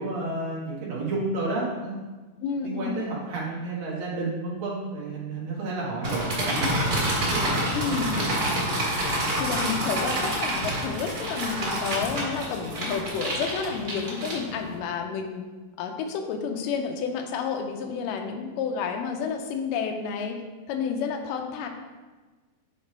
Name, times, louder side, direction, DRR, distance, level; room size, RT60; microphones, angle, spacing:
voice 1, 0.0-2.0 2.6-8.5, right 2 dB, 85° right, -5 dB, 3.3 m, -32 dB
voice 2, 2.4-3.0 7.7-8.2 9.4-15.4 15.8-20.4 20.7-21.7, left 6 dB, 85° left, 4 dB, 2.2 m, -30 dB
sound 1, 6.0-14.8, right 1 dB, 45° right, 1.3 m, -28 dB
8.8 x 3.3 x 4.4 m, 1.3 s
omnidirectional pair, 3.9 m